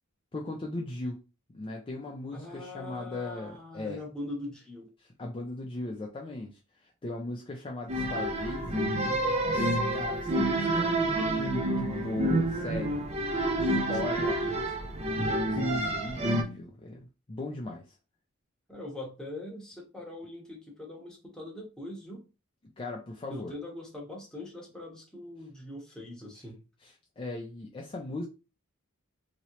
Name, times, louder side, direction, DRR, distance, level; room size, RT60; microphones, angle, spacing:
voice 1, 0.3-1.2 1.5-4.0 5.0-13.1 13.4-14.4 15.1-17.9 22.8-23.5 26.8-28.3, left 2 dB, 25° left, 0 dB, 0.4 m, -38 dB
voice 2, 2.3-4.9 14.2-15.2 18.7-22.2 23.3-26.6, left 1 dB, 5° left, -2 dB, 1.0 m, -42 dB
sound 1, 7.9-16.4, right 1 dB, 30° right, 0.5 m, -28 dB
3.0 x 2.8 x 2.9 m, 0.30 s
head